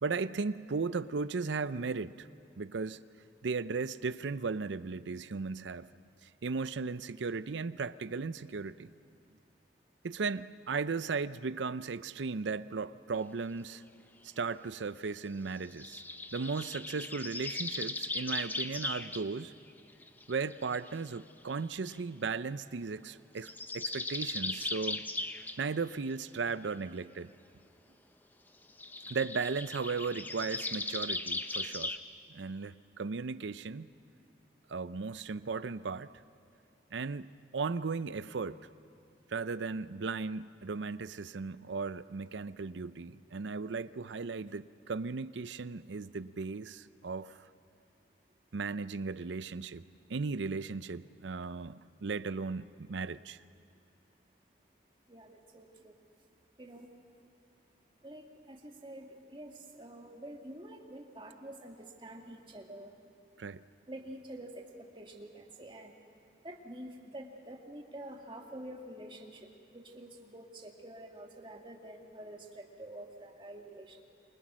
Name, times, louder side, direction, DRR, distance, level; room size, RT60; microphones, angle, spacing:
voice 1, 0.0-2.3 2.6-3.0 3.4-5.9 6.2-8.9 10.0-13.8 14.2-16.0 16.3-19.5 20.3-25.1 25.6-27.3 29.1-32.0 32.3-33.9 34.7-36.1 36.9-38.6 39.3-47.4 48.5-49.8 50.1-53.4 63.4-63.6, right 4 dB, 80° right, 15 dB, 0.6 m, -36 dB
sound 1, 15.8-19.2 19.8-20.9 21.9-22.0 23.4-25.6 28.8-32.0, left 2 dB, 10° left, 0.6 m, -38 dB
voice 2, 55.1-55.9 56.6-56.9 58.0-62.9 63.9-65.9 66.4-69.5 69.7-74.0, right 1 dB, 25° right, 2 dB, 2.0 m, -47 dB
27.5 x 24.0 x 6.2 m, 2.6 s
head